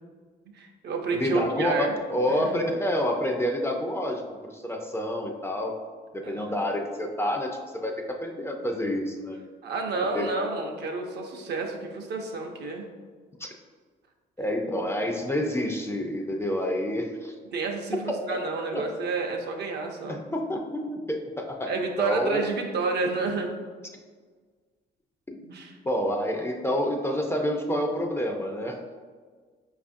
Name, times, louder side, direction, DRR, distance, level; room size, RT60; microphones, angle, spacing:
voice 1, 0.5-1.9 2.3-2.5 6.2-6.5 9.6-12.9 17.5-20.2 21.7-23.6 25.5-25.7, right 4 dB, 60° right, 2 dB, 0.6 m, -30 dB
voice 2, 1.1-1.7 2.1-5.7 6.1-9.4 10.1-10.3 13.4-13.5 14.4-17.3 18.1-18.2 18.7-18.9 20.1-21.7 22.0-22.4 25.4-25.6 25.8-28.8, left 1 dB, 15° left, 2 dB, 0.4 m, -28 dB
4.9 x 2.4 x 2.5 m, 1.5 s
cardioid pair, 80°, 19 cm